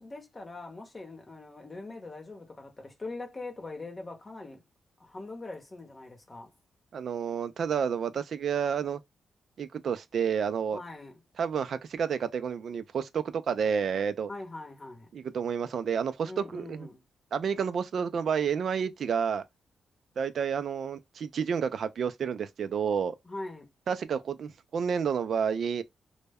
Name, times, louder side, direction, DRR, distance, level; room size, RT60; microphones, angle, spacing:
voice 1, 0.0-4.6 5.0-6.5 10.7-11.2 14.3-15.1 16.2-17.0 23.2-23.7, left 2 dB, 25° left, 0.8 m, -42 dB
voice 2, 6.9-9.0 9.6-10.8 11.4-14.3 15.1-16.9 17.3-19.4 20.2-23.2 23.9-25.8, right 7 dB, 65° right, 0.3 m, -30 dB
2.1 x 2.1 x 3.4 m
wide cardioid pair, 125°, 0 cm